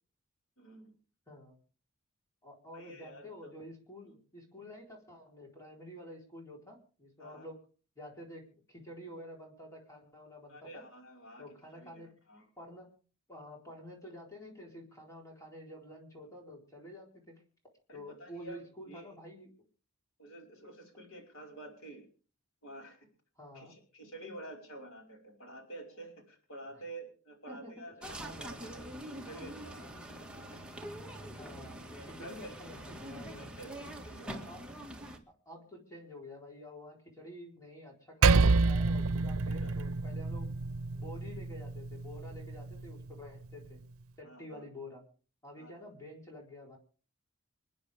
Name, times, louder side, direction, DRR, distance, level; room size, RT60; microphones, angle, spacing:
voice 1, 0.6-0.9 2.7-3.5 4.0-4.1 7.2-7.5 10.5-11.9 12.3-12.4 17.9-18.6 18.9-19.1 20.2-22.1 22.6-23.1 23.5-30.1 31.9-32.5 33.4-34.3 39.6-39.8 44.2-44.6 45.6-45.7, right 1 dB, 70° left, 1 dB, 5.1 m, -49 dB
voice 2, 1.3-1.6 2.4-7.6 8.0-10.8 11.4-12.1 12.6-12.9 13.3-17.4 17.9-19.5 23.4-23.7 26.7-26.8 27.5-27.8 31.2-33.5 34.2-34.6 35.5-40.5 40.9-43.8 44.2-45.0 45.4-46.8, left 1 dB, 15° left, -1 dB, 4.1 m, -49 dB
sound 1, 28.0-35.2, right 1 dB, 5° right, 1.9 m, -44 dB
Percussion, 38.2-43.0, right 3 dB, 85° right, 0.6 m, -28 dB
28.5 x 9.5 x 3.6 m, 0.38 s
head